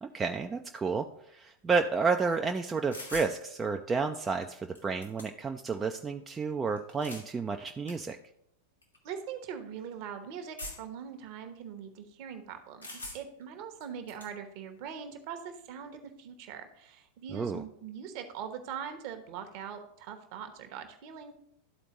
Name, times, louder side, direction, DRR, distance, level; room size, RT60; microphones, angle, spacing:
voice 1, 0.0-8.2 17.3-17.6, right 4 dB, 15° right, 4 dB, 0.4 m, -31 dB
sound 1, 2.9-3.3 4.4-4.5 4.7-5.6 6.8-7.3 7.9-8.0 8.8-9.0 10.6-11.0 12.8-13.4 13.8-14.3, left 2 dB, 80° left, 1.3 m, -43 dB
voice 2, 9.0-21.3, right 7 dB, 45° right, 7 dB, 0.9 m, -42 dB
12.5 x 4.2 x 3.0 m, 0.76 s
figure-of-eight pair, 90°, 0 cm